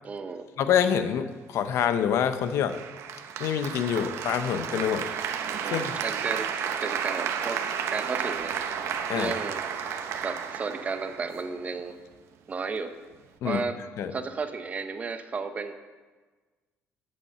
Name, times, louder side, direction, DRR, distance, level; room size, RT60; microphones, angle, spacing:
voice 1, 0.0-0.5 5.6-6.5 6.8-7.6 7.9-8.6 9.1-9.6 10.2-11.9 12.5-12.9 13.4-13.8 14.1-15.7, right 4 dB, 30° right, 9 dB, 0.8 m, -33 dB
voice 2, 0.6-2.7 3.4-5.0 5.7-5.9 9.1-9.3 13.4-13.6 14.0-14.1, left 8 dB, 70° left, 10 dB, 0.7 m, -26 dB
Applause, 2.7-11.7, right 7 dB, 65° right, 0.8 m, -32 dB
8.7 x 7.6 x 6.6 m, 1.3 s
cardioid pair, 130°, 5 cm